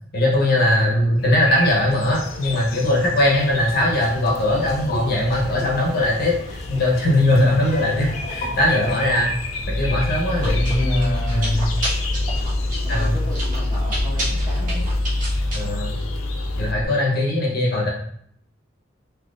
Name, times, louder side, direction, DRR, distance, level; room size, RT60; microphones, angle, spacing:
voice 1, 0.1-9.3 9.7-11.7 12.9-13.2 15.5-16.0 16.6-17.9, left 1 dB, 50° left, -3 dB, 0.8 m, -20 dB
sound 1, 1.2-16.7, left 2 dB, 90° left, 0.5 m, -34 dB
Laughter, 2.2-9.1, left 2 dB, 35° left, 0.4 m, -38 dB
Chewing mastication, 9.6-16.8, left 1 dB, 40° right, 1.2 m, -25 dB
voice 2, 10.3-11.6 12.8-14.9 17.4-17.8, equal, 10° right, -7 dB, 1.0 m, -35 dB
3.9 x 2.8 x 2.4 m, 0.67 s
head